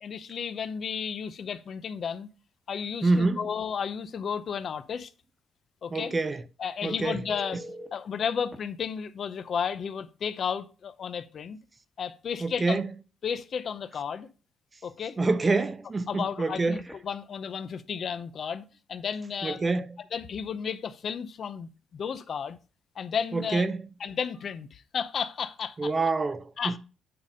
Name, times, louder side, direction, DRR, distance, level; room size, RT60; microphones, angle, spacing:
voice 1, 0.0-2.3 2.7-5.1 5.8-6.1 6.6-7.6 7.9-11.6 12.0-12.8 13.2-14.3 14.8-15.2 16.1-19.6 20.1-22.6 23.0-23.7 24.0-25.9 26.6-26.8, left 7 dB, 55° left, 0.6 m, -33 dB
voice 2, 3.0-3.5 5.9-6.4 6.8-7.2 12.4-12.9 15.2-16.8 19.4-20.0 23.3-23.8 25.8-26.8, right 3 dB, 30° right, 0.5 m, -26 dB
Telephone, 7.3-8.0 8.5-8.6 10.4-10.5 10.9-11.1 16.4-17.2 24.3-24.5, equal, ahead, 1.2 m, -45 dB
8.8 x 3.4 x 5.3 m
cardioid pair, 90°, 0 cm